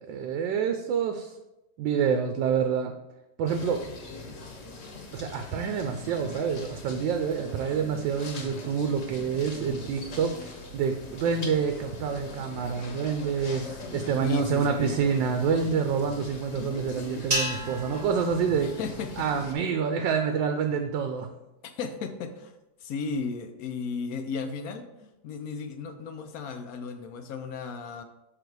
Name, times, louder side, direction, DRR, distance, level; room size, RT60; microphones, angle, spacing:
voice 1, 0.1-1.3 1.8-2.9 3.4-3.8 5.1-18.8 19.2-21.3, right 6 dB, 90° right, 6 dB, 1.3 m, -27 dB
sound 1, 3.5-19.5, left 2 dB, 50° left, 1.3 m, -41 dB
voice 2, 14.2-15.0 18.6-19.1 21.8-22.5 22.8-28.0, left 5 dB, 65° left, 7 dB, 0.9 m, -34 dB
sound 2, 17.3-19.7, right 1 dB, 30° right, 0.8 m, -34 dB
6.7 x 4.0 x 4.6 m, 0.93 s
omnidirectional pair, 1.9 m